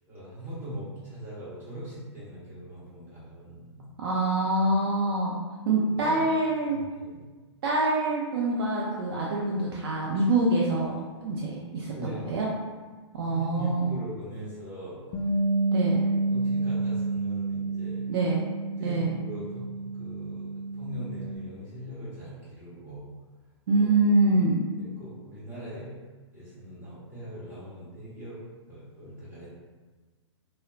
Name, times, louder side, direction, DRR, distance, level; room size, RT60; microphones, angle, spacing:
voice 1, 0.1-3.9 5.9-6.2 6.7-7.2 11.9-12.3 13.2-15.0 16.3-18.0 18.8-23.1 24.8-25.9 26.3-29.5, equal, 15° right, -10 dB, 1.4 m, -40 dB
voice 2, 4.0-5.3 5.7-6.8 7.6-12.5 13.1-13.9 15.7-16.0 18.1-18.4 18.8-19.1 23.7-24.6, right 2 dB, 55° right, -3 dB, 0.4 m, -25 dB
Bass guitar, 15.1-21.4, right 2 dB, 45° left, 0.4 m, -29 dB
2.8 x 2.0 x 2.5 m, 1.3 s
hypercardioid pair, 120°, 15 cm